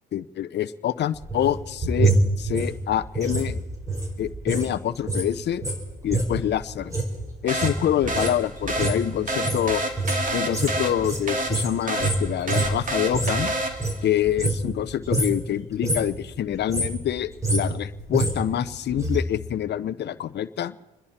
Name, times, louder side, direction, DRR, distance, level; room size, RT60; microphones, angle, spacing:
voice 1, 0.1-3.6 4.2-5.7 6.0-6.9 7.4-9.8 10.3-13.5 14.0-20.8, left 11 dB, 60° left, 14 dB, 0.7 m, -26 dB
sound 1, 1.1-4.7 4.9-13.4 13.7-14.8 15.0-15.4 15.7-16.2 16.5-19.2 19.5-19.6, right 2 dB, 15° right, 4.4 m, -26 dB
sound 2, 7.5-14.1, right 1 dB, 40° right, 2.3 m, -29 dB
27.5 x 10.5 x 4.3 m, 1.0 s
cardioid pair, 90°, 20 cm